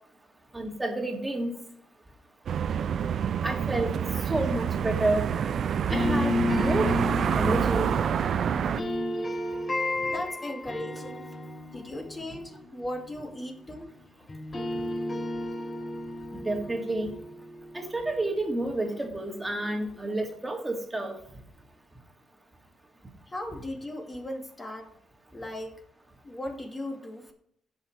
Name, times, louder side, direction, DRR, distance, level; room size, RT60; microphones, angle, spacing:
voice 1, 0.5-1.5 3.4-3.9 4.3-5.2 5.9-6.9 7.4-7.9 16.4-17.1 17.7-21.1, right 2 dB, 15° right, 2 dB, 2.3 m, -29 dB
sound 1, 2.5-8.8, right 8 dB, 60° right, 0.5 m, -27 dB
sound 2, 5.9-14.0 14.3-19.2, left 2 dB, 35° left, 3.8 m, -33 dB
voice 2, 10.0-11.2 11.6-13.9 23.3-24.9 25.3-25.8 26.2-27.3, left 1 dB, 20° left, 3 dB, 2.2 m, -37 dB
16.5 x 5.6 x 3.3 m, 0.66 s
cardioid pair, 90°, 0 cm